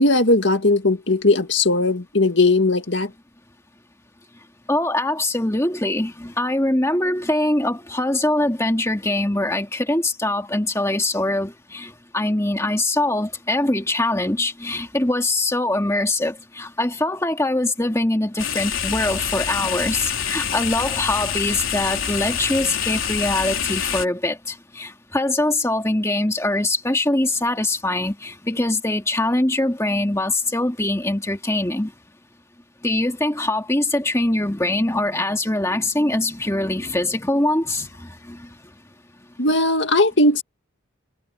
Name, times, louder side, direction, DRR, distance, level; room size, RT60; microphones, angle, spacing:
voice 1, 0.0-3.1 39.4-40.4, left 2 dB, 60° left, 2.1 m, -18 dB
voice 2, 4.7-31.9 32.8-38.4, left 1 dB, 15° left, 1.9 m, -23 dB
sound 1, 18.4-24.1, left 8 dB, 85° left, 3.7 m, -26 dB
head